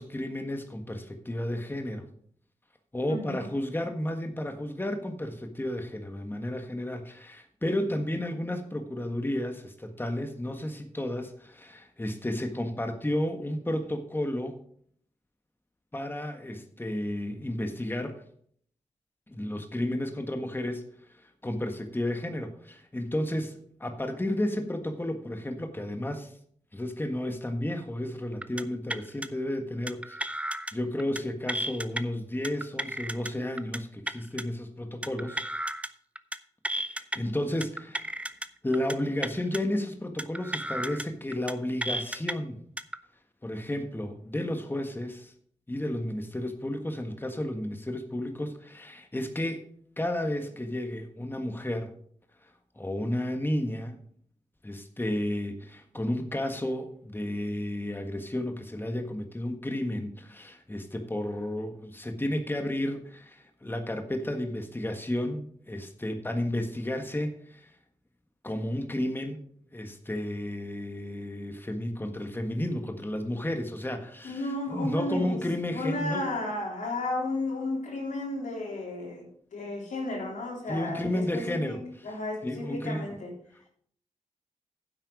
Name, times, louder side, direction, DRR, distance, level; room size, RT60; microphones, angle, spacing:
voice 1, 0.0-2.1 2.9-14.6 15.9-18.2 19.3-20.8 21.1-26.3 26.7-30.2 30.7-35.4 36.7-38.1 38.6-42.6 43.4-45.3 45.7-49.6 50.0-51.9 52.7-54.0 54.6-67.7 68.4-69.4 69.7-76.3 80.7-81.8 82.4-83.2, left 1 dB, 15° left, 6 dB, 1.4 m, -32 dB
voice 2, 3.1-3.5 74.2-75.4 75.7-79.3 79.5-81.8 82.0-83.3, left 2 dB, 80° left, -1 dB, 3.6 m, -33 dB
sound 1, 28.4-28.6 28.9-29.3 29.9-30.7 31.0-31.2 31.5-32.0 32.4-33.3 33.6-33.8 34.1-34.4 35.0-35.9 36.2-36.4 36.6-37.2 37.6-38.5 38.7-38.9 39.2-39.6 40.2-41.0 41.3-41.5 41.8-42.3 42.8-43.0, right 1 dB, 10° right, 0.7 m, -33 dB
9.8 x 8.1 x 4.9 m, 0.62 s
cardioid pair, 45°, 13 cm